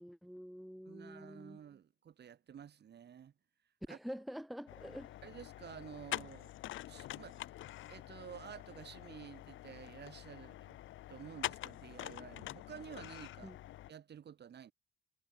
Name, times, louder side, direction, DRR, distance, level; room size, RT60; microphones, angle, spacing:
voice 1, 0.0-1.6 3.9-5.2 13.4-13.6, equal, ahead, 1.0 m, -47 dB
voice 2, 0.9-3.3 3.9-4.0 5.2-6.5 6.9-7.5 7.9-10.8 11.1-13.5 13.9-14.7, right 8 dB, 55° right, 5.0 m, -51 dB
sound 1, 4.7-13.9, left 14 dB, 75° left, 0.8 m, -46 dB
cardioid pair, 90°, 20 cm